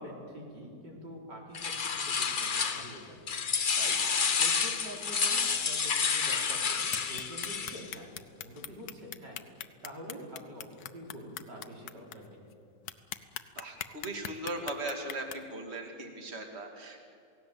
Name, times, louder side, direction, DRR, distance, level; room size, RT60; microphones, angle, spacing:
voice 1, 0.0-3.2 3.5-4.0 4.4-10.7 10.9-12.4, equal, 75° right, -1 dB, 4.9 m, -46 dB
sound 1, 1.5-3.0 3.3-7.9, left 6 dB, 40° left, 0.8 m, -30 dB
sound 2, 6.9-12.1 12.5-12.6 12.9-15.3, left 10 dB, 75° left, 1.5 m, -40 dB
voice 2, 13.6-17.0, right 2 dB, 35° right, 3 dB, 2.5 m, -38 dB
28.0 x 17.5 x 7.9 m, 2.6 s
omnidirectional pair, 1.9 m